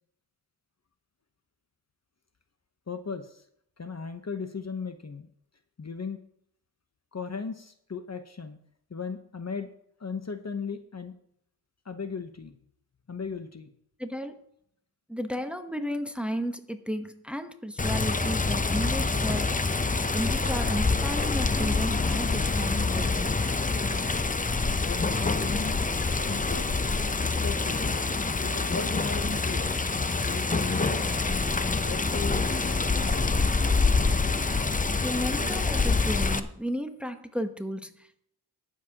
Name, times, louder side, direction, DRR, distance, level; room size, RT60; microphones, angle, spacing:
voice 1, 2.9-3.4 3.8-5.3 5.8-6.2 7.1-8.6 8.9-9.7 10.0-11.1 11.8-12.6 13.1-13.7 24.8-25.8 26.2-26.7 27.2-28.0 28.4-29.8 30.2-31.1 31.7-33.3, left 5 dB, 40° left, 8 dB, 1.0 m, -37 dB
voice 2, 14.0-14.4 15.1-19.6 20.1-23.5 35.0-38.2, equal, 5° right, 8 dB, 1.1 m, -33 dB
Water, 17.8-36.4, left 3 dB, 20° left, 0.7 m, -26 dB
21.5 x 7.4 x 3.0 m, 0.70 s
cardioid pair, 55°, 40 cm